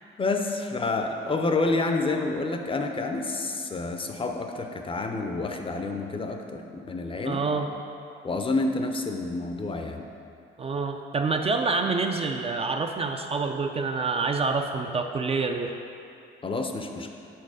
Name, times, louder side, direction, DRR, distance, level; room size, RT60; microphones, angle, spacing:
voice 1, 0.2-7.4 8.2-10.0 16.4-17.1, left 3 dB, 25° left, 4 dB, 0.5 m, -28 dB
voice 2, 7.2-7.7 10.6-15.7, right 4 dB, 30° right, 5 dB, 0.3 m, -27 dB
5.5 x 4.4 x 4.8 m, 2.6 s
cardioid pair, 90°, 20 cm